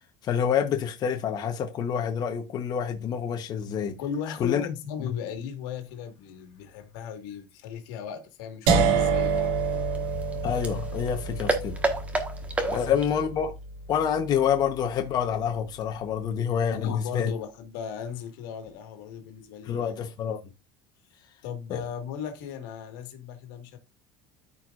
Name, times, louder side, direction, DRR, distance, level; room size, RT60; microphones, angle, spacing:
voice 1, 0.2-4.0 4.4-4.7 10.4-11.8 12.7-13.5 13.9-17.3 19.6-20.4 21.7-21.8, left 8 dB, 35° left, 1.0 m, -27 dB
voice 2, 4.0-9.6 12.6-13.0 16.7-20.0 21.4-23.8, left 8 dB, 85° left, 1.8 m, -36 dB
sound 1, 8.7-14.6, right 5 dB, 75° right, 2.2 m, -28 dB
sound 2, 9.1-13.2, right 2 dB, 10° right, 1.4 m, -32 dB
13.5 x 4.6 x 2.5 m
cardioid pair, 145°, 11 cm